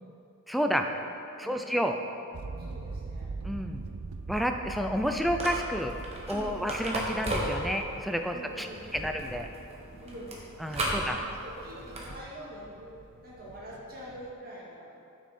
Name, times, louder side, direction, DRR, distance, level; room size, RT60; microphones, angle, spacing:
voice 1, 0.5-0.9 1.4-2.0 3.4-3.8 4.3-5.9 6.3-9.5 10.6-11.2, equal, ahead, 4 dB, 0.4 m, -30 dB
voice 2, 1.4-1.7 2.6-3.3 6.3-6.6 8.3-9.1 10.0-15.0, equal, 45° right, -6 dB, 2.1 m, -45 dB
sound 1, 2.3-14.3, right 3 dB, 85° right, 0.5 m, -44 dB
sound 2, 5.3-12.2, right 1 dB, 30° right, 1.2 m, -36 dB
9.9 x 6.2 x 4.3 m, 2.7 s
head